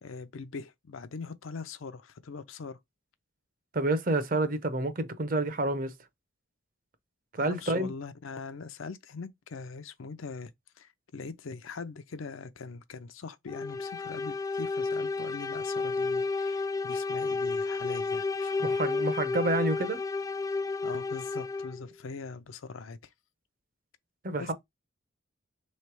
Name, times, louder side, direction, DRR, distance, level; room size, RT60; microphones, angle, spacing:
voice 1, 0.0-2.8 7.4-10.5 10.8-18.8 20.8-23.0 24.4-24.5, left 4 dB, 80° left, 0.5 m, -42 dB
voice 2, 3.7-5.9 7.3-7.9 18.6-20.0 24.2-24.5, right 2 dB, 45° right, 0.7 m, -28 dB
sound 1, 13.5-21.9, left 3 dB, 15° left, 0.4 m, -31 dB
3.2 x 3.2 x 4.5 m
head